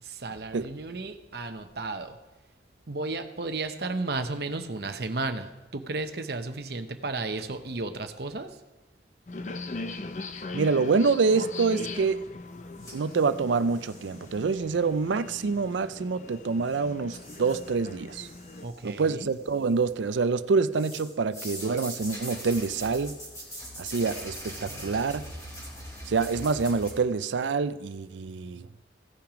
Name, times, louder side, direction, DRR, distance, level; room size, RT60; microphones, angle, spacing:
voice 1, 0.0-2.2 2.9-8.6 18.6-19.3 24.7-25.0, right 3 dB, 60° right, 0.8 m, -34 dB
sound 1, 9.3-18.7, left 2 dB, 40° left, 0.6 m, -40 dB
voice 2, 10.5-12.2 12.9-18.3 18.8-23.2 23.8-25.3 26.1-28.7, right 4 dB, 90° right, 0.5 m, -26 dB
sound 2, 12.8-14.3 16.7-16.8 17.1-17.7 18.1-18.9 19.3-20.1 20.7-26.9, equal, 20° left, 2.7 m, -42 dB
16.5 x 5.8 x 5.1 m
head